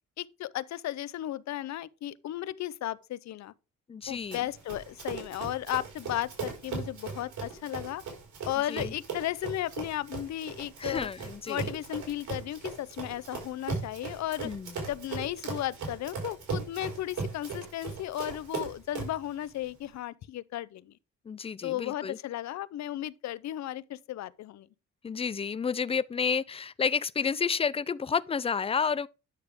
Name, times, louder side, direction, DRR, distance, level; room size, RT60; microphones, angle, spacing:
voice 1, 0.2-3.5 4.1-8.0 8.5-11.1 11.5-14.5 14.9-20.9 21.6-24.7, left 13 dB, 65° left, 0.6 m, -35 dB
voice 2, 3.9-4.4 8.7-8.9 10.8-11.6 14.4-14.7 21.3-22.2 25.0-29.1, left 6 dB, 20° left, 0.4 m, -30 dB
Run, 4.3-19.2, right 5 dB, 70° right, 4.8 m, -38 dB
9.8 x 6.6 x 3.5 m
cardioid pair, 90°, 30 cm